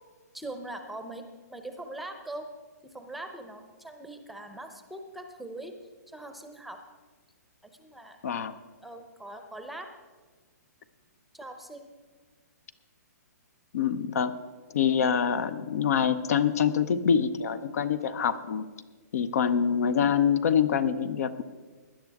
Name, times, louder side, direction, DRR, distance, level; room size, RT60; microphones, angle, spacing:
voice 1, 0.3-1.2 1.5-2.5 2.9-5.7 6.1-6.8 7.6-8.2 8.8-9.9 11.3-11.9, right 1 dB, ahead, 6 dB, 0.7 m, -41 dB
voice 2, 8.2-8.5 13.7-14.3 14.7-18.7 19.1-21.4, left 7 dB, 60° left, 14 dB, 0.7 m, -25 dB
19.0 x 10.5 x 3.6 m, 1.4 s
hypercardioid pair, 150°, 9 cm